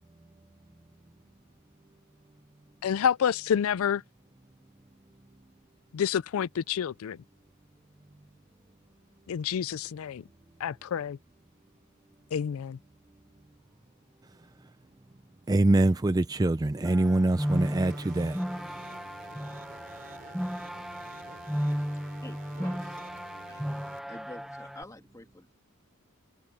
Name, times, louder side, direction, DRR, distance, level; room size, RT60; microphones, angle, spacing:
voice 1, 2.8-4.0 5.9-7.2 9.3-10.2 10.6-11.2 12.3-12.8, left 8 dB, 65° left, 0.4 m, -28 dB
voice 2, 14.2-14.7 15.5-18.8, right 2 dB, 15° right, 0.4 m, -25 dB
sound 1, 16.8-24.8, equal, ahead, 0.9 m, -34 dB
sound 2, 17.4-24.0, right 3 dB, 40° right, 3.3 m, -50 dB
voice 3, 21.6-21.9 22.2-22.7 23.5-23.8 24.1-25.5, left 1 dB, 15° left, 2.0 m, -48 dB
head